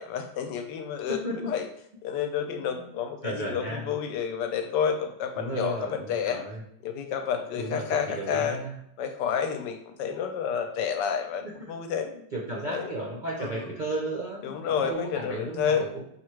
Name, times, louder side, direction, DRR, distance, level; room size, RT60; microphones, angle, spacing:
voice 1, 0.0-1.2 1.5-1.7 2.0-6.4 6.8-8.6 9.0-12.1 12.7-12.9 13.4-13.6 14.4-15.9, left 7 dB, 85° left, 6 dB, 1.2 m, -30 dB
voice 2, 1.1-1.5 2.6-2.9 3.2-3.9 5.3-6.6 7.5-8.8 11.4-11.7 12.3-16.0, right 2 dB, 60° right, -3 dB, 0.5 m, -34 dB
5.7 x 2.4 x 3.2 m, 0.73 s
omnidirectional pair, 1.8 m